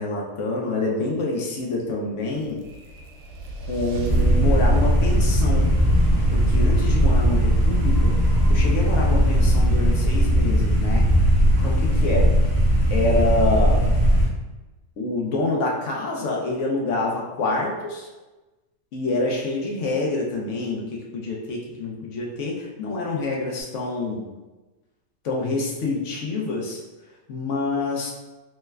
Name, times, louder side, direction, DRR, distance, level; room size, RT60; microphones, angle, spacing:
voice 1, 0.0-2.6 3.6-5.7 6.3-8.2 8.5-11.0 11.6-12.3 12.9-13.9 15.0-18.1 18.9-24.3 25.2-26.8 27.3-28.1, left 2 dB, 70° left, -2 dB, 0.8 m, -26 dB
sound 1, 2.4-11.5, right 3 dB, 80° right, 1.1 m, -36 dB
sound 2, 4.1-14.2, equal, 25° left, 0.7 m, -18 dB
3.2 x 2.1 x 3.3 m, 1.1 s
omnidirectional pair, 1.5 m